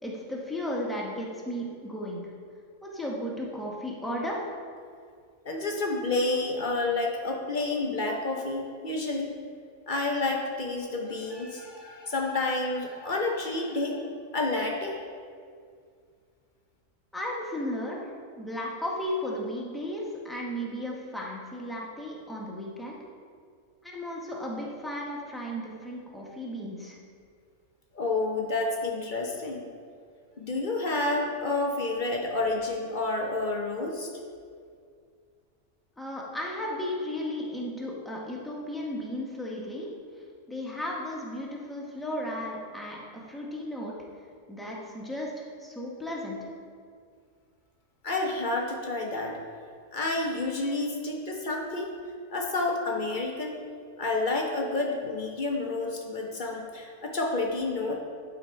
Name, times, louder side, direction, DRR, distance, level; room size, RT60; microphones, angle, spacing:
voice 1, 0.0-2.2 2.8-4.5 17.1-23.0 23.8-27.0 36.0-39.9 40.5-43.9 44.5-46.5, left 1 dB, ahead, -3 dB, 0.9 m, -35 dB
voice 2, 5.4-9.3 9.9-14.0 14.3-15.0 27.9-29.6 30.4-34.1 48.0-49.4 49.9-51.9 52.3-53.6 54.0-58.0, left 2 dB, 40° left, 1 dB, 0.8 m, -29 dB
12.0 x 4.1 x 4.4 m, 2.2 s
omnidirectional pair, 1.4 m